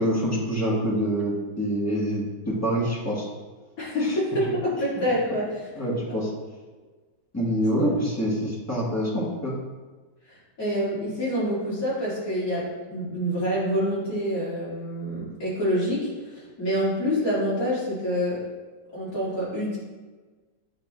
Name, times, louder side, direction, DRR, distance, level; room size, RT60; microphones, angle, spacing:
voice 1, 0.0-3.3 4.0-4.1 5.8-6.3 7.3-9.5, equal, 10° left, -5 dB, 0.9 m, -26 dB
voice 2, 3.8-5.7 10.6-18.4 18.9-19.8, equal, 50° left, -8 dB, 2.4 m, -27 dB
8.6 x 4.0 x 3.0 m, 1.3 s
omnidirectional pair, 1.9 m